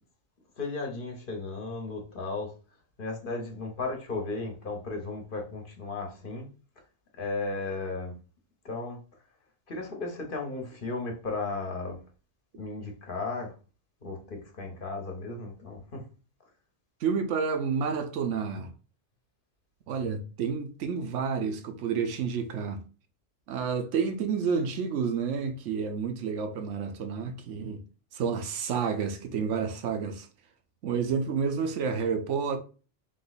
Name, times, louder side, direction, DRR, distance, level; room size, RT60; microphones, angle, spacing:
voice 1, 0.6-2.5 3.0-6.5 7.2-8.1 8.6-9.0 9.7-12.0 12.5-13.5 14.0-16.0, left 3 dB, 50° left, 1.1 m, -35 dB
voice 2, 17.0-18.7 19.9-22.8 23.5-27.8 28.1-30.3 30.8-32.6, right 6 dB, 80° right, 1.0 m, -30 dB
3.7 x 3.0 x 4.0 m
omnidirectional pair, 1.2 m